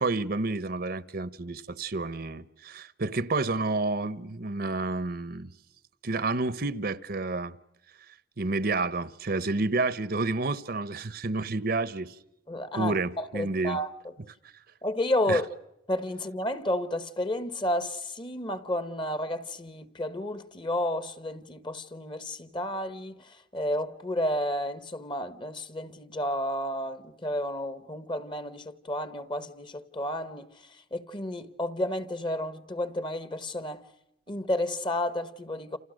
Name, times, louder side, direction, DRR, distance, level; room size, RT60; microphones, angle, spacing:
voice 1, 0.0-5.5 6.0-7.5 8.4-12.1 12.7-13.8 15.3-15.4, right 3 dB, 50° right, 0.9 m, -29 dB
voice 2, 12.5-13.9 14.8-15.5 15.9-30.5 30.9-33.8 34.3-35.8, left 1 dB, 25° left, 1.2 m, -31 dB
29.5 x 28.5 x 6.4 m
head